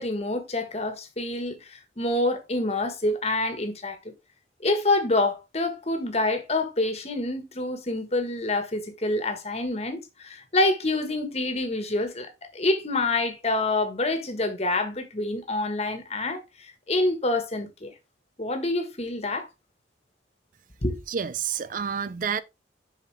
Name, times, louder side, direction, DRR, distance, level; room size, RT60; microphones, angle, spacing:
voice 1, 0.0-4.1 4.6-16.4 16.9-17.9 18.4-19.5 20.8-21.0, left 2 dB, 35° left, 1.5 m, -27 dB
voice 2, 21.1-22.4, right 7 dB, 45° right, 0.4 m, -29 dB
7.3 x 5.6 x 3.4 m
head